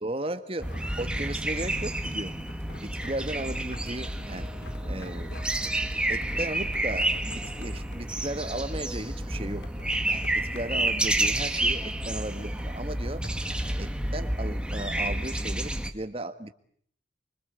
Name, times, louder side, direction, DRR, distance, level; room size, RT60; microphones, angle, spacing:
voice 1, 0.0-2.3 2.8-4.5 4.9-5.3 6.1-13.2 13.8-16.5, right 1 dB, 30° right, 9 dB, 1.8 m, -36 dB
sound 1, 0.6-13.9, left 2 dB, 80° left, 2.6 m, -49 dB
sound 2, 0.6-15.9, right 1 dB, 5° right, 1.7 m, -30 dB
25.5 x 25.0 x 8.3 m, 0.63 s
head